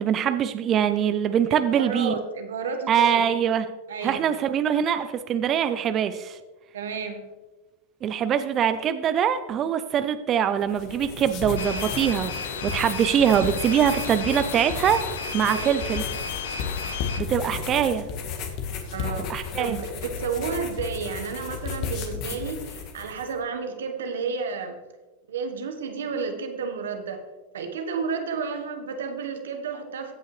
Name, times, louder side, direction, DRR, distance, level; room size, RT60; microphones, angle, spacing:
voice 1, 0.0-2.1 2.9-3.6 4.0-6.4 8.0-12.3 12.6-15.0 15.3-16.0 17.2-18.1 19.3-19.8, right 9 dB, 35° right, 11 dB, 0.5 m, -23 dB
voice 2, 1.5-3.2 3.9-4.3 6.7-7.3 15.5-15.7 18.9-24.7 25.3-27.2 27.5-30.1, right 5 dB, 90° right, 6 dB, 1.3 m, -31 dB
sound 1, 10.6-23.3, left 6 dB, 50° left, 1.6 m, -34 dB
sound 2, 11.6-17.2, left 5 dB, 85° left, 1.0 m, -33 dB
16.0 x 5.6 x 3.2 m, 1.2 s
hypercardioid pair, 115°, 0 cm